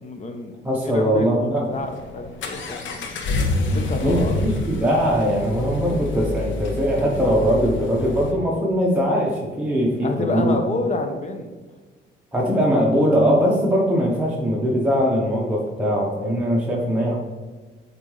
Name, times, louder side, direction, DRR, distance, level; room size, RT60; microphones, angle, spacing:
voice 1, 0.0-3.1 3.7-4.3 10.0-11.5, left 2 dB, 35° left, 5 dB, 0.9 m, -29 dB
voice 2, 0.6-1.7 4.0-10.5 12.3-17.2, equal, 5° right, -4 dB, 1.0 m, -21 dB
Accelerating revving vroom, 1.7-8.3, left 2 dB, 70° left, 0.8 m, -27 dB
7.3 x 4.1 x 3.2 m, 1.3 s
cardioid pair, 90°, 20 cm